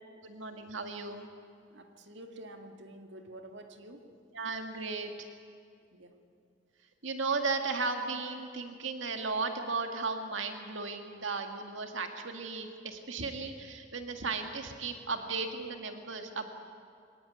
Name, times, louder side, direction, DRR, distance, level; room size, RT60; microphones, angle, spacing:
voice 1, 0.2-1.3 4.3-5.3 7.0-16.5, right 4 dB, 85° right, 5 dB, 1.9 m, -35 dB
voice 2, 1.7-4.2 5.9-6.2, right 1 dB, 65° right, 5 dB, 1.9 m, -49 dB
23.5 x 18.0 x 9.9 m, 2.4 s
head